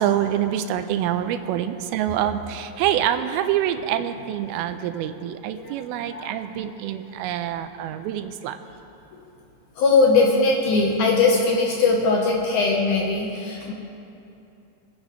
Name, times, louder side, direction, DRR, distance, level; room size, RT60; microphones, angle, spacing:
voice 1, 0.0-8.6, right 11 dB, 85° right, 9 dB, 2.4 m, -26 dB
voice 2, 9.8-13.7, left 3 dB, 70° left, -1 dB, 2.0 m, -20 dB
25.0 x 10.5 x 3.1 m, 2.8 s
omnidirectional pair, 4.4 m